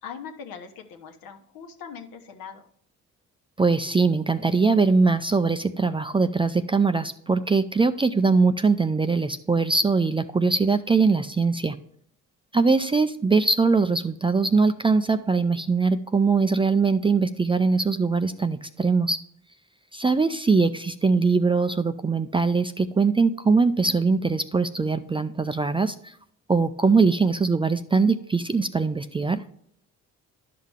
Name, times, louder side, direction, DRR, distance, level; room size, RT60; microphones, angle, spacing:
voice 1, 0.0-2.7, left 7 dB, 75° left, 4 dB, 1.2 m, -41 dB
voice 2, 3.6-11.8 12.5-19.2 19.9-26.1 26.5-29.4, right 4 dB, 15° right, 10 dB, 0.4 m, -22 dB
11.0 x 5.7 x 3.6 m, 0.66 s
supercardioid pair, 75°, 35 cm